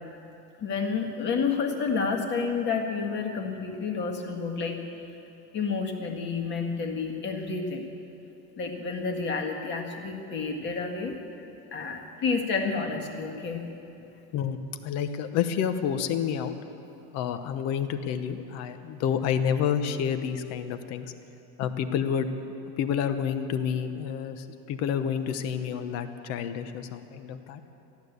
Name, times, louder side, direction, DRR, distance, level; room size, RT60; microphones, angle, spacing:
voice 1, 0.6-4.8 5.5-7.9 8.6-11.1 11.7-13.6, left 5 dB, 35° left, 2 dB, 1.8 m, -30 dB
voice 2, 14.8-16.6 17.1-21.1 21.6-22.3 22.8-27.6, left 8 dB, 60° left, 9 dB, 1.0 m, -29 dB
14.5 x 12.0 x 8.1 m, 2.8 s
cardioid pair, 160°, 30 cm